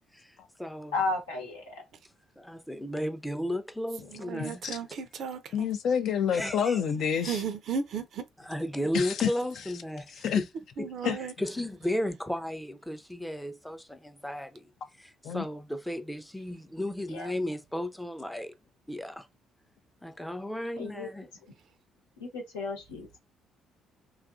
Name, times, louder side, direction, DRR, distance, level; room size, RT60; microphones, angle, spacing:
voice 1, 0.1-1.0 2.4-4.6 6.3-6.8 8.4-10.5 10.8-10.9 11.4-14.7 15.0-18.5 18.9-19.3 20.0-21.3, left 1 dB, 5° left, 0.5 m, -34 dB
voice 2, 0.9-1.7 17.1-17.3 20.8-21.1 22.2-23.2, left 3 dB, 85° left, 0.9 m, -33 dB
voice 3, 4.1-5.7 7.2-8.2 10.8-11.3, right 6 dB, 60° right, 0.4 m, -35 dB
voice 4, 5.5-7.4 8.9-9.3 10.2-10.4 11.0-11.2 15.2-15.4, left 7 dB, 60° left, 0.4 m, -27 dB
2.6 x 2.4 x 2.4 m
hypercardioid pair, 50°, 0 cm